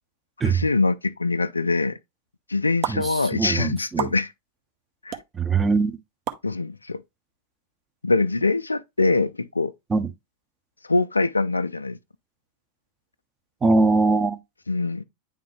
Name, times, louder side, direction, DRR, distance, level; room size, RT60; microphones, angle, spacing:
voice 1, 0.4-2.0 2.5-4.3 5.0-5.2 6.4-7.0 8.0-9.7 10.9-12.0 14.7-15.0, left 3 dB, 80° left, 0.4 m, -23 dB
sound 1, 2.8-2.9 4.0-4.1 5.1-5.2 6.3-6.4, right 9 dB, 40° right, 0.9 m, -28 dB
voice 2, 2.9-4.1 5.3-6.0 9.9-10.1 13.6-14.4, right 3 dB, 15° right, 0.7 m, -22 dB
9.3 x 3.7 x 3.1 m
figure-of-eight pair, 90°, 0 cm